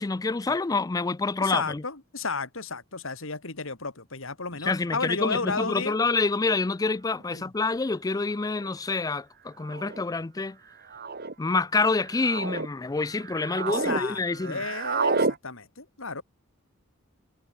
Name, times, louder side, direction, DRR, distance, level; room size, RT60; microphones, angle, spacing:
voice 1, 0.0-1.8 4.6-10.6 11.4-14.6, left 3 dB, 15° left, 0.4 m, -27 dB
voice 2, 1.4-6.0 7.3-7.5 13.7-16.2, left 4 dB, 70° left, 3.1 m, -33 dB
sound 1, 7.3-7.4 8.4-8.7 9.6-10.0 10.9-11.3 12.0-12.7 13.1-14.0 14.3-15.4, right 4 dB, 50° right, 2.4 m, -30 dB
head